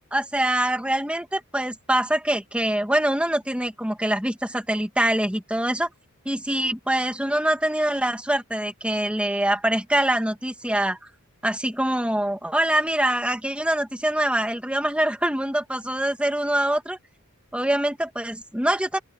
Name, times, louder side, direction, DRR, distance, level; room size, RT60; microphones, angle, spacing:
voice 1, 0.1-5.9 6.3-11.0 11.4-17.0 17.5-19.0, right 1 dB, 5° right, 2.3 m, -24 dB
open air
head